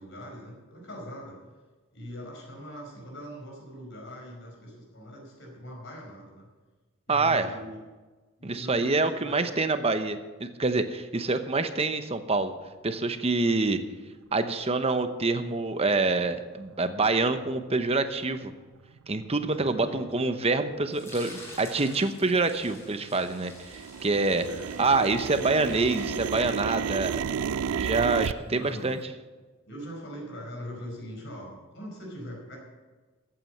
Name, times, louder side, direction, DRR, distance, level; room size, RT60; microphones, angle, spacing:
voice 1, 0.0-1.4 1.9-6.5 7.1-7.8 8.4-9.5 11.1-11.4 13.4-13.7 19.4-20.0 24.5-24.7 28.4-28.9 29.7-32.6, equal, 60° left, 0 dB, 5.0 m, -42 dB
voice 2, 7.1-7.6 8.4-12.5 12.8-13.8 14.3-18.5 19.1-24.5 24.8-27.2 27.7-29.0, right 3 dB, 30° right, 9 dB, 0.9 m, -26 dB
sound 1, 17.5-17.6 18.2-18.3 18.9-19.2 19.7-19.8 20.0-20.6 20.9-23.2 23.5-28.3, right 7 dB, 85° right, 0.4 m, -32 dB
sound 2, 20.9-27.0, left 1 dB, 10° left, 4.5 m, -49 dB
14.5 x 8.9 x 6.6 m, 1.3 s
head